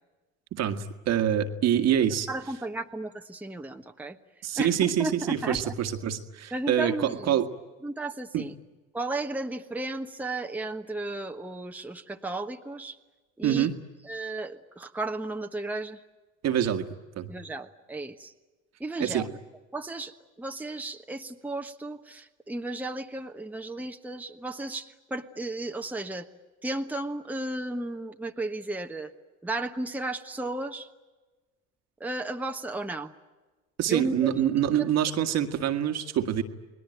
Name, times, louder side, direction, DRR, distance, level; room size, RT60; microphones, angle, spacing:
voice 1, 0.5-2.3 4.4-7.4 8.3-8.5 13.4-13.7 16.4-16.9 17.2-17.3 19.0-19.3 33.8-36.4, right 10 dB, 50° right, 8 dB, 1.8 m, -26 dB
voice 2, 2.3-4.2 4.6-5.7 6.5-7.3 7.8-8.5 8.9-13.0 13.4-13.7 14.0-16.0 17.3-18.3 18.8-19.3 19.7-20.1 20.4-26.3 26.6-29.1 29.4-30.9 32.0-33.1 33.9-34.5 34.8-34.9, right 2 dB, 5° right, 4 dB, 1.3 m, -34 dB
29.5 x 20.0 x 9.2 m, 1.2 s
hypercardioid pair, 60°, 33 cm